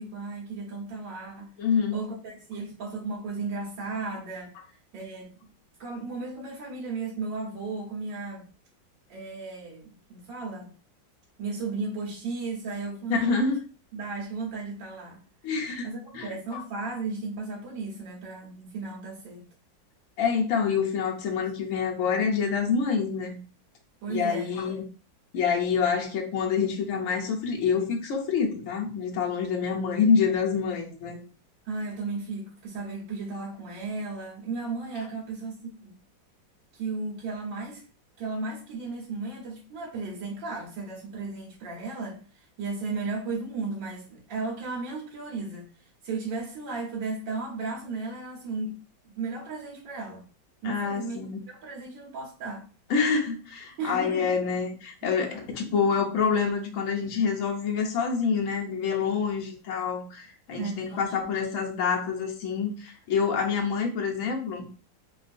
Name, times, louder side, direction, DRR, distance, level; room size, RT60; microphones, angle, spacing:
voice 1, 0.0-1.5 1.9-4.5 4.9-5.3 5.8-8.5 9.1-10.7 11.4-13.4 13.9-15.2 15.8-19.4 24.0-24.6 31.7-36.0 36.7-37.8 38.2-48.8 49.1-50.2 50.6-51.2 51.5-52.7 53.8-54.3 60.6-61.0, right 3 dB, 90° right, 1.6 m, -35 dB
voice 2, 1.6-2.0 13.1-13.6 15.4-15.9 16.1-16.6 20.2-23.4 24.1-24.8 25.3-31.2 50.6-51.4 52.9-64.7, left 6 dB, 65° left, 0.9 m, -27 dB
3.5 x 2.3 x 2.5 m
omnidirectional pair, 2.0 m